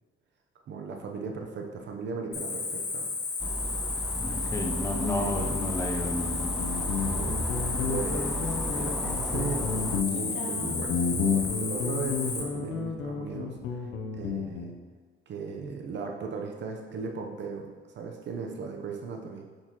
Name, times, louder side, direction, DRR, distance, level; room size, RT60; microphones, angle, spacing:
voice 1, 0.7-3.1 5.1-5.3 7.0-7.5 7.9-13.9 14.2-14.8 15.3-17.7 17.9-19.5, right 5 dB, 65° right, 3 dB, 0.9 m, -37 dB
Cricket, 2.3-12.4, left 4 dB, 55° left, 1.5 m, -33 dB
sound 1, 3.4-10.0, right 1 dB, ahead, 0.3 m, -35 dB
voice 2, 4.2-6.6, left 1 dB, 15° left, 2 dB, 0.8 m, -31 dB
Guitar, 6.3-14.8, left 6 dB, 85° left, 0.7 m, -32 dB
6.5 x 6.2 x 3.0 m, 1.5 s
cardioid pair, 90°, 20 cm